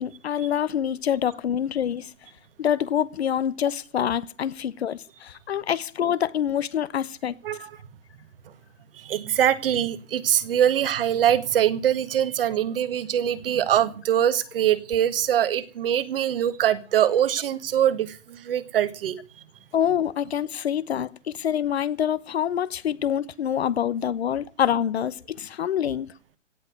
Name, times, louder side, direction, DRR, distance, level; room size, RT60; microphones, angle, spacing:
voice 1, 0.0-2.1 2.6-7.4 19.7-26.1, left 9 dB, 60° left, 1.1 m, -26 dB
voice 2, 8.9-19.2, right 10 dB, 50° right, 1.7 m, -23 dB
17.0 x 7.7 x 9.3 m
hypercardioid pair, 145°, 36 cm